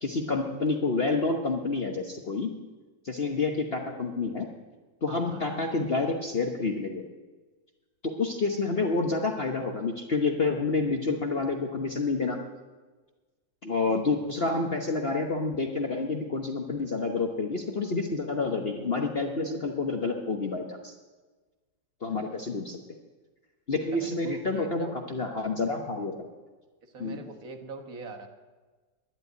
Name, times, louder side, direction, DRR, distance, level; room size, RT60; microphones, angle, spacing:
voice 1, 0.0-2.5 3.0-4.5 5.0-7.0 8.0-12.4 13.6-20.9 22.0-22.8 23.7-26.1 27.0-27.2, left 3 dB, 40° left, 2 dB, 1.0 m, -28 dB
voice 2, 5.1-5.9 23.9-25.0 26.8-28.3, right 4 dB, 50° right, 5 dB, 1.8 m, -43 dB
11.0 x 11.0 x 9.3 m, 1.3 s
omnidirectional pair, 2.0 m